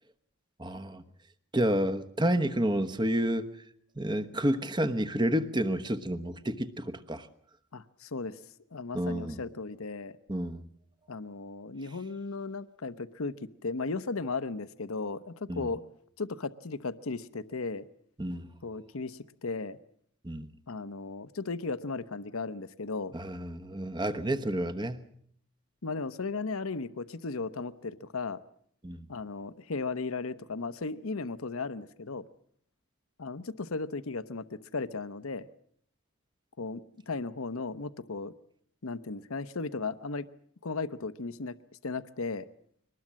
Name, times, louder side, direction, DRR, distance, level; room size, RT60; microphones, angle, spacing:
voice 1, 0.6-1.0 1.5-3.5 4.0-7.3 8.9-9.4 10.3-10.6 15.5-15.7 18.2-18.5 20.2-20.5 23.1-25.1 28.8-29.1, right 1 dB, 20° right, 1.1 m, -30 dB
voice 2, 7.7-8.4 8.7-10.2 11.1-15.8 16.2-17.8 18.6-19.8 20.7-23.2 25.8-28.4 29.1-32.2 33.2-35.5 36.6-38.3 38.8-40.3 40.6-41.6 41.8-42.5, left 3 dB, 75° left, 0.9 m, -36 dB
23.5 x 20.0 x 7.4 m
head